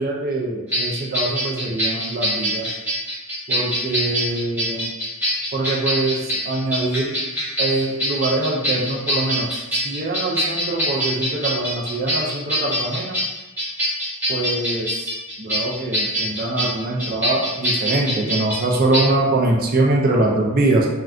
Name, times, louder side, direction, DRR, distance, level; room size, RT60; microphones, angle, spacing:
voice 1, 0.0-2.7 3.5-4.9 5.5-7.2 7.6-13.2 14.3-15.1 15.4-20.9, right 2 dB, 45° right, -1 dB, 0.4 m, -23 dB
sound 1, 0.7-19.0, equal, 10° right, 1.0 m, -24 dB
3.7 x 2.2 x 2.3 m, 1.1 s
head